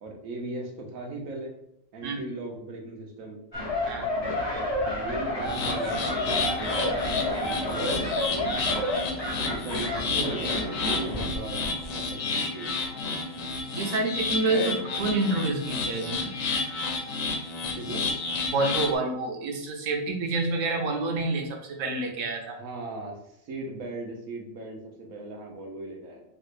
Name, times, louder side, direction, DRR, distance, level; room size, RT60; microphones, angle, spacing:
voice 1, 0.0-1.5 1.9-3.4 4.9-8.6 9.5-12.9 14.5-14.8 17.7-18.0 22.6-26.2, right 2 dB, 90° right, 1 dB, 1.2 m, -38 dB
sound 1, 3.5-11.3 11.6-11.8, left 1 dB, 30° left, 0.6 m, -30 dB
sound 2, 5.4-19.0, left 4 dB, 75° left, 1.0 m, -31 dB
voice 2, 13.5-16.3 18.5-22.6, right 2 dB, 75° right, 2 dB, 1.0 m, -28 dB
3.2 x 2.5 x 3.2 m, 0.78 s
omnidirectional pair, 1.4 m